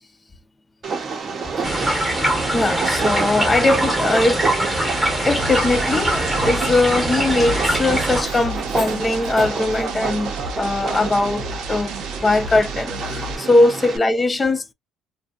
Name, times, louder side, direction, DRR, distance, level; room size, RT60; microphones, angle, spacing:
Train, 0.8-14.0, right 4 dB, 35° right, 0.7 m, -28 dB
sound 1, 1.6-8.2, right 1 dB, 10° right, 0.9 m, -23 dB
voice 1, 2.5-4.4 5.2-10.3 10.6-11.9 12.2-14.7, left 2 dB, 15° left, 0.4 m, -20 dB
sound 2, 5.4-13.4, right 3 dB, 85° right, 0.6 m, -33 dB
2.5 x 2.2 x 2.3 m
cardioid pair, 125°, 0 cm